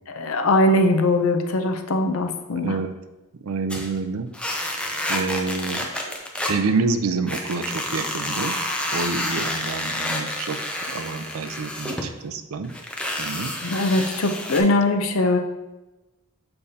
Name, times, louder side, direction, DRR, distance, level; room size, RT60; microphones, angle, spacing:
voice 1, 0.1-2.8 13.6-15.4, left 2 dB, 75° left, 6 dB, 0.6 m, -21 dB
voice 2, 2.5-2.9 3.4-4.3 5.1-6.2 6.5-8.6 8.9-10.6 10.9-12.7 13.2-13.5, right 4 dB, 75° right, 9 dB, 0.5 m, -27 dB
sound 1, 3.7-4.0 4.3-6.6 7.3-12.1 12.6-14.6, left 1 dB, 5° left, 0.5 m, -29 dB
6.7 x 5.3 x 2.8 m, 1.1 s
head